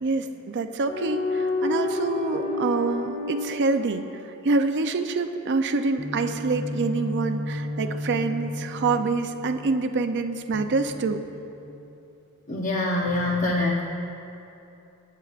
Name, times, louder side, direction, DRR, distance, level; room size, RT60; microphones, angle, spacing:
voice 1, 0.0-4.1 4.4-11.2, right 3 dB, 55° right, 7 dB, 0.5 m, -26 dB
sound 1, 0.9-4.6 6.0-9.7 10.5-11.8, left 2 dB, 65° left, 2.0 m, -31 dB
voice 2, 12.5-13.8, left 2 dB, 35° left, -3 dB, 0.8 m, -24 dB
25.0 x 9.3 x 2.5 m, 2.8 s
head